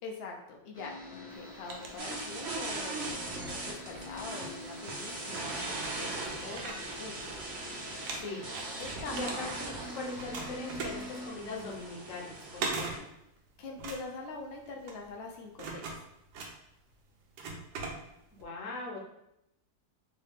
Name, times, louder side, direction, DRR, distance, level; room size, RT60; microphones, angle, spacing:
voice 1, 0.0-7.3 8.8-9.2 13.6-15.9, left 4 dB, 90° left, 1 dB, 0.5 m, -44 dB
sound 1, 0.7-11.3, left 1 dB, 30° left, 0.6 m, -46 dB
sound 2, 1.3-2.6 3.1-4.8 5.3-5.4 5.7-7.6 7.9-9.8 10.2-18.4, right 3 dB, 90° right, 1.2 m, -41 dB
sound 3, 2.0-13.0, right 2 dB, 55° right, 0.8 m, -40 dB
voice 2, 8.1-8.5 9.1-13.1 18.3-19.0, left 3 dB, 60° left, -1 dB, 1.0 m, -40 dB
3.3 x 2.7 x 3.5 m, 0.83 s
omnidirectional pair, 1.7 m